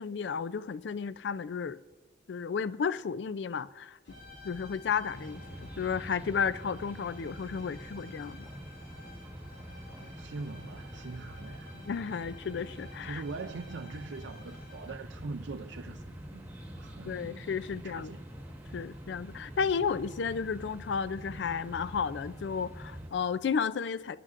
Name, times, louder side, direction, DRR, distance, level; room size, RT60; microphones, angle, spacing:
voice 1, 0.0-1.8 2.3-4.0 4.4-5.4 5.8-8.5 11.7-13.2 17.0-18.1 18.7-24.2, left 6 dB, 65° left, 0.4 m, -33 dB
sound 1, 4.0-15.2, left 2 dB, 80° left, 4.5 m, -54 dB
sound 2, 4.1-23.2, equal, 35° right, 1.0 m, -52 dB
sound 3, 5.1-23.1, equal, 10° right, 1.4 m, -46 dB
voice 2, 10.0-11.8 13.0-16.4 16.8-18.3, right 4 dB, 75° right, 0.5 m, -43 dB
24.0 x 11.0 x 2.5 m
head